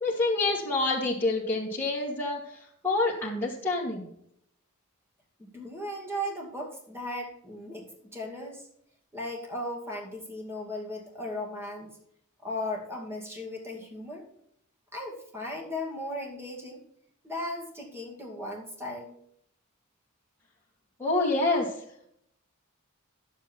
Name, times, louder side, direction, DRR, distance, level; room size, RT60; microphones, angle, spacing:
voice 1, 0.0-2.4 2.8-4.0 21.0-21.7, left 2 dB, 10° left, -7 dB, 2.1 m, -27 dB
voice 2, 5.4-8.6 9.1-11.9 12.4-14.2 14.9-16.8 17.2-19.1, left 1 dB, 10° right, 0 dB, 2.2 m, -36 dB
11.0 x 7.5 x 4.4 m, 0.70 s
head